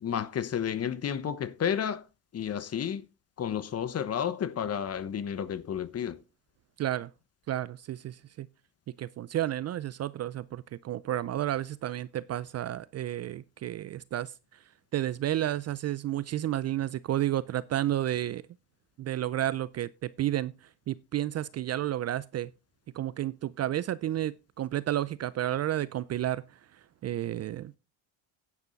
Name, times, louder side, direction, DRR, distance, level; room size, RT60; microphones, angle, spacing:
voice 1, 0.0-2.1 2.3-3.0 3.4-6.2, left 8 dB, 35° left, 1.1 m, -31 dB
voice 2, 6.8-7.1 7.5-8.5 9.0-14.6 14.9-18.4 19.0-22.5 22.9-27.7, right 12 dB, 35° right, 0.5 m, -31 dB
10.5 x 9.7 x 4.0 m
supercardioid pair, 105°, 45 cm